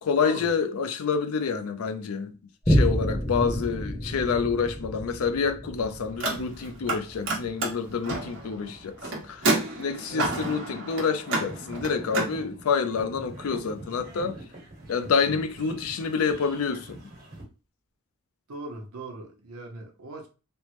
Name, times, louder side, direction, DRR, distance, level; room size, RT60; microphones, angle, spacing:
voice 1, 0.0-2.4 2.7-14.4 14.9-17.0, left 5 dB, 80° left, 0.4 m, -28 dB
Boom, 2.6-9.6 10.1-10.2, equal, 15° left, 0.5 m, -30 dB
Car, 6.1-7.0 7.2-12.3, right 2 dB, 60° right, 1.0 m, -29 dB
sound 1, 11.4-17.4, right 1 dB, 40° right, 1.3 m, -43 dB
voice 2, 18.5-20.3, right 3 dB, 85° right, 0.8 m, -39 dB
3.3 x 2.1 x 2.9 m
head